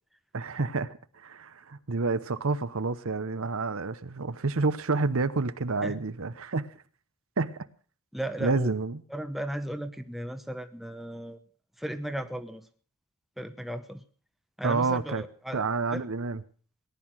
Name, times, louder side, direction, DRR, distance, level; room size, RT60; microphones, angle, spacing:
voice 1, 0.3-1.0 1.2-6.7 7.4-7.6 8.4-9.0 14.6-15.2 15.5-16.4, right 3 dB, 60° right, 0.8 m, -29 dB
voice 2, 8.1-8.7 9.1-11.4 11.8-12.7 13.4-14.0 14.6-16.0, right 1 dB, ahead, 0.9 m, -36 dB
18.5 x 11.0 x 6.1 m
head